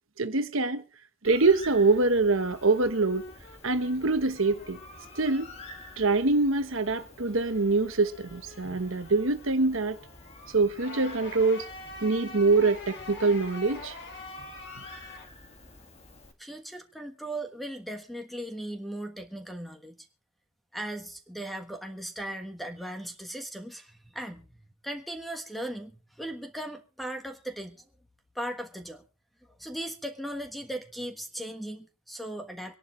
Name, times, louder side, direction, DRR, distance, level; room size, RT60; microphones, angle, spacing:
voice 1, 0.2-0.8 1.2-3.3 3.6-4.8 5.2-5.5 6.0-10.0 10.5-11.6 12.0-14.0, right 3 dB, 65° right, 1.1 m, -24 dB
Bird, 1.2-16.3, left 1 dB, 30° left, 1.9 m, -50 dB
sound 1, 1.8-6.3 6.6-15.2, left 3 dB, 55° left, 3.0 m, -47 dB
voice 2, 16.4-20.0 20.7-24.6 24.8-27.8 28.3-29.0 29.6-32.8, right 1 dB, ahead, 1.3 m, -38 dB
25.0 x 11.0 x 3.2 m
head